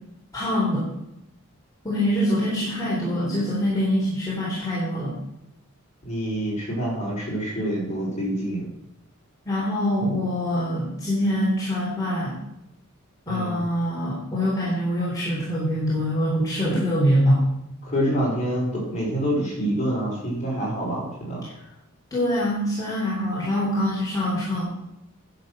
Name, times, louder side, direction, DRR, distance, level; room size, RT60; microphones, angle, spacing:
voice 1, 0.3-0.9 1.8-5.2 9.4-12.4 13.3-17.4 22.1-24.6, equal, 15° left, -7 dB, 3.3 m, -24 dB
voice 2, 6.0-8.7 13.3-13.6 16.7-16.8 17.8-21.5, equal, 35° left, -4 dB, 4.9 m, -27 dB
10.5 x 6.9 x 6.2 m, 0.83 s
head